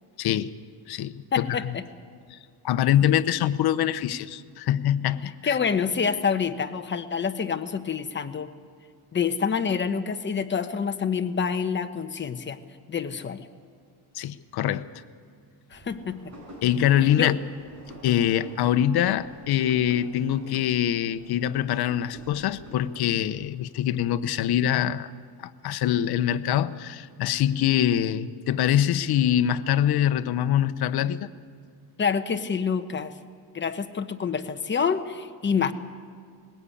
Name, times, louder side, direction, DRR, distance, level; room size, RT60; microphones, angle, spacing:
voice 1, 0.2-0.5 0.9-1.7 2.3-2.4 2.6-5.6 14.1-14.9 16.6-17.4 18.0-25.1 25.4-31.2, left 11 dB, 60° left, 12 dB, 0.9 m, -24 dB
voice 2, 1.3-1.8 5.4-8.5 9.1-12.6 12.9-13.5 15.7-16.2 17.0-17.4 32.0-33.1 33.5-35.7, left 6 dB, 25° left, 8 dB, 1.0 m, -27 dB
sound 1, 15.7-23.4, right 1 dB, 40° right, 6.1 m, -48 dB
20.5 x 17.0 x 8.5 m, 2.3 s
cardioid pair, 135°, 42 cm